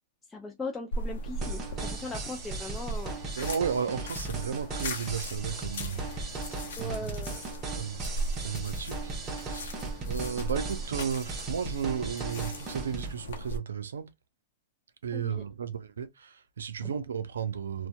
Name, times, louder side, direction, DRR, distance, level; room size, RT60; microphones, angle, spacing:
voice 1, 0.3-3.2 6.8-7.4 10.0-10.1 15.1-15.4 16.8-16.9, left 2 dB, 10° left, 0.4 m, -39 dB
sound 1, 0.9-13.6, equal, 75° left, 0.7 m, -38 dB
sound 2, 1.4-13.1, right 3 dB, 30° right, 0.8 m, -38 dB
voice 2, 3.4-6.0 6.8-7.1 7.7-8.0 8.4-9.1 9.4-9.8 10.1-14.1 15.0-17.9, right 7 dB, 85° right, 0.5 m, -34 dB
2.6 x 2.2 x 2.2 m
hypercardioid pair, 120°, 0 cm